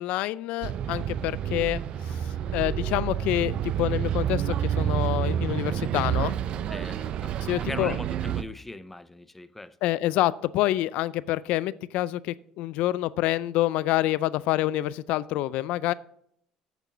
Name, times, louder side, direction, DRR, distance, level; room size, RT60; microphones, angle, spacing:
voice 1, 0.0-6.4 7.5-8.0 9.8-15.9, left 15 dB, 70° left, 19 dB, 0.3 m, -27 dB
Bus, 0.6-8.4, right 9 dB, 50° right, 0.5 m, -29 dB
voice 2, 6.7-7.3 7.6-9.8, left 2 dB, 10° left, 14 dB, 0.4 m, -39 dB
8.2 x 6.9 x 6.1 m, 0.70 s
cardioid pair, 135°, 2 cm